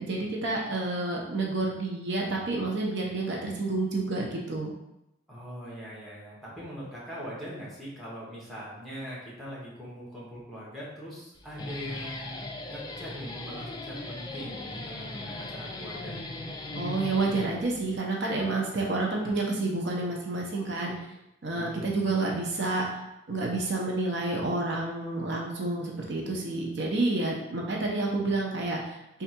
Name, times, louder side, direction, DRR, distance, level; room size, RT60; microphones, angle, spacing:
voice 1, 0.0-4.7 16.7-20.9 21.4-22.8 23.3-29.0, right 2 dB, 60° right, -1 dB, 0.6 m, -29 dB
voice 2, 5.3-16.2 21.5-22.2, equal, ahead, -7 dB, 1.0 m, -41 dB
Guitar, 11.3-18.0, left 2 dB, 20° left, 0.4 m, -38 dB
3.4 x 2.4 x 4.3 m, 0.87 s
head